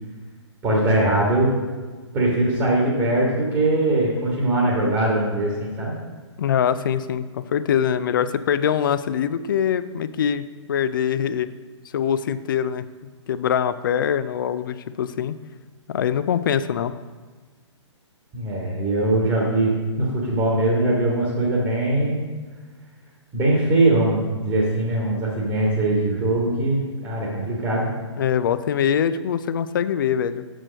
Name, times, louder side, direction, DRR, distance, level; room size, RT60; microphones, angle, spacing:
voice 1, 0.6-1.5 2.1-5.9 18.3-22.2 23.3-27.9, right 2 dB, 20° right, -4 dB, 1.5 m, -21 dB
voice 2, 6.4-11.5 11.9-12.8 13.3-15.4 15.9-16.9 28.2-30.4, left 8 dB, 45° left, 13 dB, 0.4 m, -23 dB
7.3 x 6.4 x 5.1 m, 1.4 s
figure-of-eight pair, 120°, 15 cm